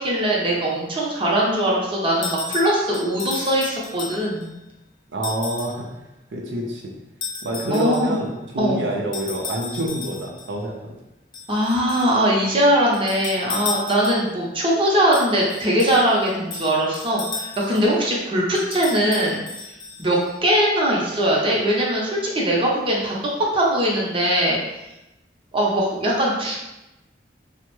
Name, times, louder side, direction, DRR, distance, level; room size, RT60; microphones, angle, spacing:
voice 1, 0.0-4.5 7.7-8.1 8.6-8.8 11.5-19.4 20.0-23.2 23.5-24.6 25.5-26.6, right 1 dB, 30° right, -4 dB, 0.7 m, -21 dB
sound 1, 2.2-4.5 5.2-5.8 7.2-8.2 9.1-10.5 11.3-12.2 12.9-14.4 15.1-17.9 18.6-20.3, left 4 dB, 25° left, 0.4 m, -34 dB
voice 2, 5.1-5.9 6.3-6.9 7.4-10.9, right 1 dB, 80° right, -2 dB, 0.6 m, -27 dB
3.4 x 2.1 x 3.1 m, 0.94 s
head